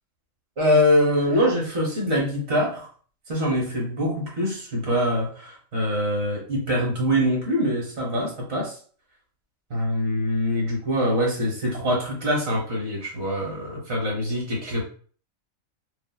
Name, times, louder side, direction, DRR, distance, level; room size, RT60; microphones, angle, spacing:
voice 1, 0.6-2.9 3.3-8.7 9.7-14.8, equal, 60° right, -2 dB, 1.2 m, -24 dB
2.6 x 2.6 x 2.2 m, 0.44 s
omnidirectional pair, 1.4 m